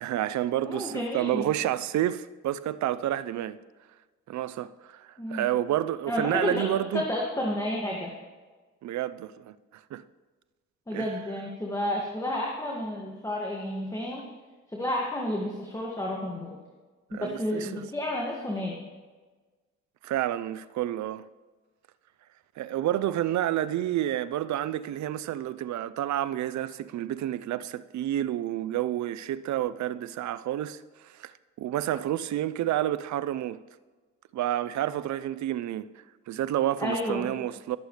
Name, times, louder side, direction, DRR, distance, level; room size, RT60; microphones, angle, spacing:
voice 1, 0.0-3.6 4.3-7.0 8.8-10.0 10.9-11.1 17.1-17.9 20.0-21.3 22.6-31.3 31.6-33.6 34.3-35.9 36.3-37.8, right 12 dB, 70° right, 0.6 m, -29 dB
voice 2, 0.6-1.5 5.2-5.5 6.1-6.6 6.9-8.1 10.9-14.2 14.7-16.6 17.1-18.8 36.8-37.3, left 1 dB, 10° left, 2.1 m, -31 dB
20.0 x 8.0 x 3.3 m
cardioid pair, 90°, 30 cm